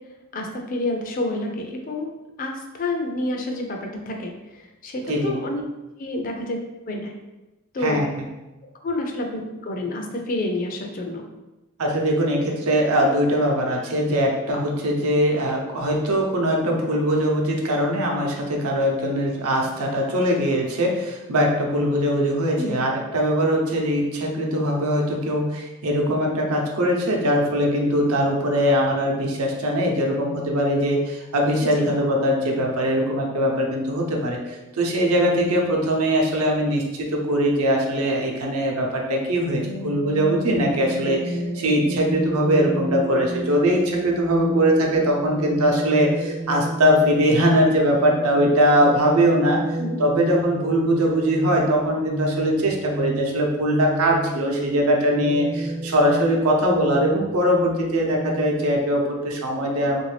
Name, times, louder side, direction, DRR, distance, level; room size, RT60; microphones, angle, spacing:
voice 1, 0.3-2.1 2.4-5.6 6.0-6.6 6.9-7.1 7.7-8.1 8.8-11.3 22.6-22.8 31.6-31.8 49.8-50.0, left 1 dB, 40° left, 2 dB, 0.4 m, -28 dB
voice 2, 7.8-8.3 11.8-49.6 50.0-60.0, equal, 85° right, 0 dB, 0.7 m, -21 dB
sound 1, 39.6-58.7, right 2 dB, 35° right, 0.4 m, -31 dB
3.2 x 2.6 x 3.2 m, 1.0 s
head